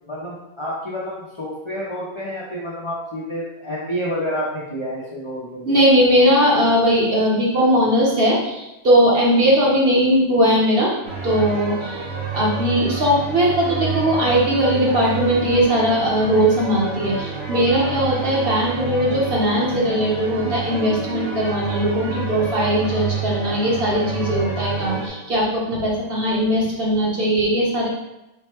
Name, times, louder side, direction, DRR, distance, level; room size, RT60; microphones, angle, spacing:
voice 1, 0.0-5.7, equal, 40° left, -6 dB, 0.4 m, -29 dB
voice 2, 5.7-10.9 11.2-12.0 12.3-27.9, equal, 45° right, -5 dB, 1.0 m, -19 dB
sound 1, 11.0-25.1, right 5 dB, 75° right, 1.2 m, -28 dB
3.8 x 2.1 x 4.3 m, 0.93 s
omnidirectional pair, 1.5 m